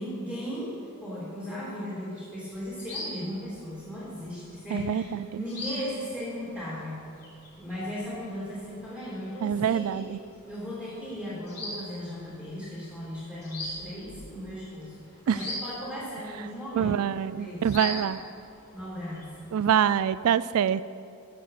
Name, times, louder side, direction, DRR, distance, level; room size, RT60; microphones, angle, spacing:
voice 1, 0.0-5.1 5.3-7.0 7.6-10.0 10.5-16.9 17.2-18.0 18.7-19.5, equal, 10° left, -9 dB, 3.1 m, -37 dB
sound 1, 2.5-20.0, left 1 dB, 50° left, 3.3 m, -44 dB
voice 2, 4.7-5.4 9.4-10.2 15.3-15.4 16.7-18.2 19.5-20.8, right 8 dB, 80° right, 16 dB, 0.3 m, -25 dB
14.5 x 7.2 x 5.9 m, 2.5 s
head